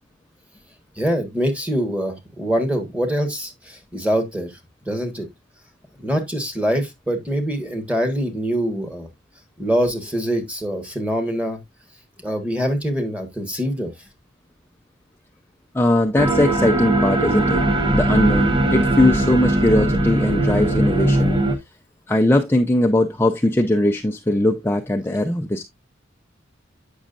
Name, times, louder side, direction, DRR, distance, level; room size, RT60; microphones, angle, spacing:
voice 1, 1.0-4.5 4.9-5.3 6.0-9.1 9.6-11.6 12.2-13.9, equal, 5° right, 1.5 m, -24 dB
voice 2, 15.7-17.6 17.9-21.4 22.1-25.6, left 1 dB, 10° left, 0.5 m, -19 dB
sound 1, 16.2-21.6, right 1 dB, 25° right, 0.9 m, -19 dB
8.4 x 6.2 x 2.5 m
head